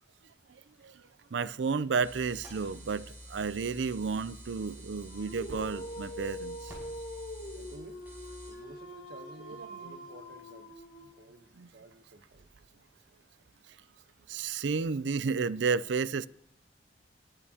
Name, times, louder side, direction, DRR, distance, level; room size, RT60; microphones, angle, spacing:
voice 1, 1.3-6.7 9.8-9.9 11.6-11.7 14.3-16.3, right 5 dB, 80° right, 0.5 m, -32 dB
sound 1, 2.0-8.5, right 1 dB, 10° right, 6.0 m, -48 dB
Dog, 5.0-11.4, equal, 55° left, 1.7 m, -44 dB
voice 2, 7.5-8.0 8.4-10.8 11.2-12.5, right 2 dB, 60° right, 1.0 m, -52 dB
21.0 x 11.0 x 2.8 m
head